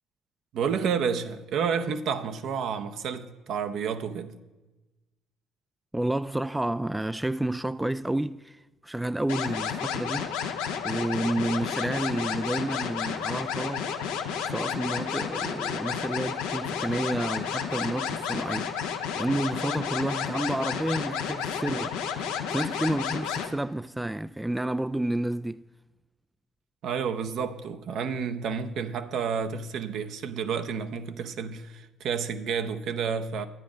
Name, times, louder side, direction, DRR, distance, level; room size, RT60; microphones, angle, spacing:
voice 1, 0.5-4.4 26.8-33.5, right 6 dB, 65° right, 0.7 m, -30 dB
voice 2, 5.9-10.3 10.8-13.9 14.5-25.6, right 1 dB, 10° right, 0.3 m, -30 dB
sound 1, 9.3-23.5, left 7 dB, 85° left, 1.0 m, -31 dB
11.0 x 9.3 x 5.0 m
hypercardioid pair, 55°, 0 cm